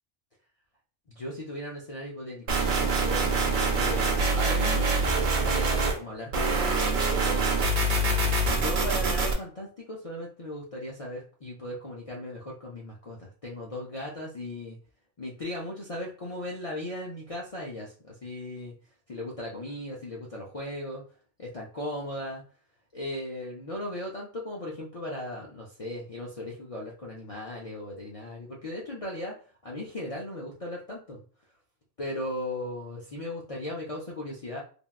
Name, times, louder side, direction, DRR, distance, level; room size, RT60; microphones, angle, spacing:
voice 1, 1.1-7.6 8.4-14.8 15.2-18.7 19.1-21.1 21.4-22.4 22.9-29.4 29.6-31.2 32.0-34.6, left 1 dB, 60° left, -4 dB, 0.3 m, -37 dB
sound 1, 2.5-6.0 6.3-9.3, right 3 dB, 50° right, 0.7 m, -25 dB
3.4 x 2.3 x 2.3 m, 0.41 s
omnidirectional pair, 1.3 m